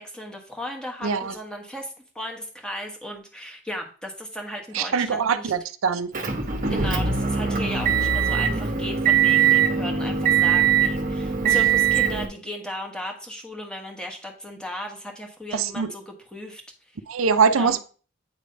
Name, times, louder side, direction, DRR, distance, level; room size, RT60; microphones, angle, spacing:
voice 1, 0.0-5.5 6.7-16.6 16.9-17.0 17.5-17.8, equal, 5° left, 1 dB, 1.2 m, -36 dB
voice 2, 1.0-1.3 4.7-6.1 6.7-6.9 11.4-11.5 15.5-15.9 17.1-17.8, right 5 dB, 80° right, 11 dB, 0.5 m, -23 dB
Motor vehicle (road) / Engine, 6.1-12.3, right 7 dB, 40° right, 0.9 m, -21 dB
8.6 x 3.3 x 5.3 m, 0.40 s
head